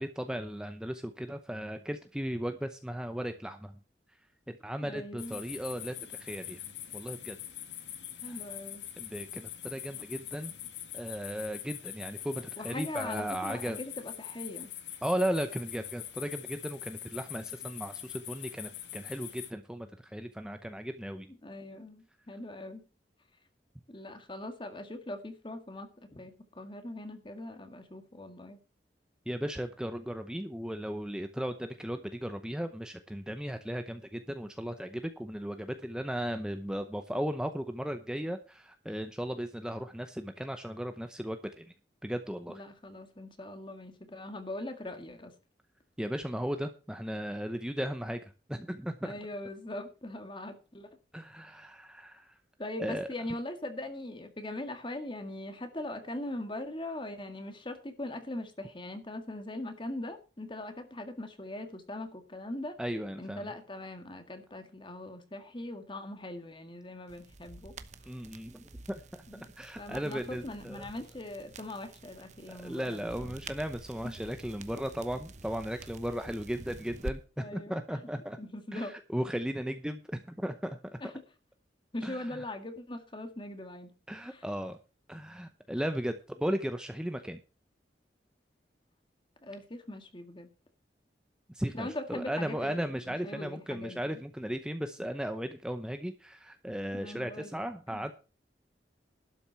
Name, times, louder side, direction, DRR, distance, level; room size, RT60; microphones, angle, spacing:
voice 1, 0.0-3.8 4.5-7.4 8.3-8.4 9.0-10.5 10.9-13.8 15.0-21.3 29.3-41.7 42.0-42.6 46.0-49.1 51.1-52.4 52.8-53.1 62.8-63.5 68.1-69.2 69.6-70.9 72.6-78.4 78.7-81.0 82.0-82.4 84.1-84.8 85.1-87.4 91.5-98.1, equal, 5° right, 0.7 m, -36 dB
voice 2, 4.8-5.4 8.2-8.8 12.6-14.7 21.4-22.8 23.9-28.6 42.5-45.3 49.0-50.9 52.6-62.8 63.2-67.7 69.3-69.5 69.8-73.4 74.0-74.1 77.4-77.8 78.4-78.9 81.0-81.1 81.9-83.9 84.3-84.4 89.4-90.5 91.7-94.2 96.9-98.1, left 1 dB, 30° left, 1.9 m, -41 dB
sound 1, 5.2-19.5, left 11 dB, 90° left, 1.6 m, -43 dB
sound 2, 67.1-77.1, right 2 dB, 40° right, 0.9 m, -47 dB
12.0 x 7.2 x 5.8 m
head